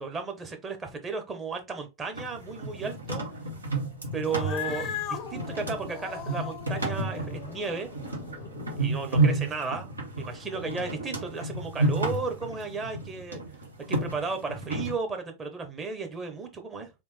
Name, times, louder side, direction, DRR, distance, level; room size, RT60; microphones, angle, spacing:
voice 1, 0.0-3.2 4.1-7.9 8.8-13.4 13.9-16.9, right 4 dB, 20° right, 1.0 m, -34 dB
sound 1, 2.1-15.0, right 2 dB, 80° right, 0.9 m, -31 dB
Cat, 4.2-8.9, left 8 dB, 35° left, 0.5 m, -39 dB
3.6 x 2.8 x 3.2 m
figure-of-eight pair, 90°, 0 cm